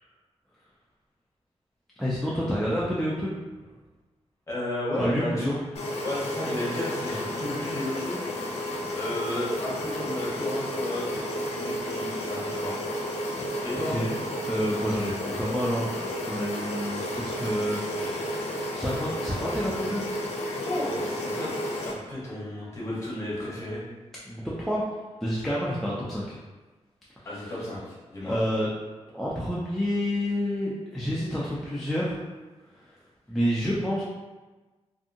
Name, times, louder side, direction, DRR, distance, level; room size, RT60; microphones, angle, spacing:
voice 1, 2.0-3.4 5.0-5.6 13.9-14.1 14.4-20.0 24.3-24.8 25.2-26.4 28.2-28.7 29.1-32.2 33.3-34.0, equal, 5° left, -7 dB, 0.3 m, -29 dB
voice 2, 4.5-5.6 6.0-12.8 13.3-14.0 20.6-21.7 22.0-23.8 27.2-28.3, left 1 dB, 25° left, -7 dB, 0.9 m, -33 dB
sound 1, 5.8-21.9, left 1 dB, 65° left, 0.5 m, -32 dB
2.6 x 2.6 x 2.5 m, 1.2 s
wide cardioid pair, 165°, 11 cm